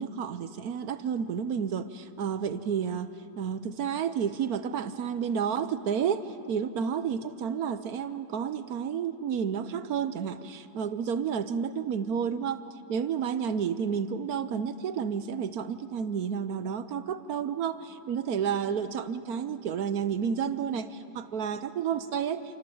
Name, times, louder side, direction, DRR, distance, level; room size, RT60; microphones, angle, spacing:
voice 1, 0.0-12.6 12.9-22.6, right 7 dB, 65° right, 12 dB, 1.2 m, -31 dB
27.5 x 26.0 x 7.1 m, 2.8 s
omnidirectional pair, 1.8 m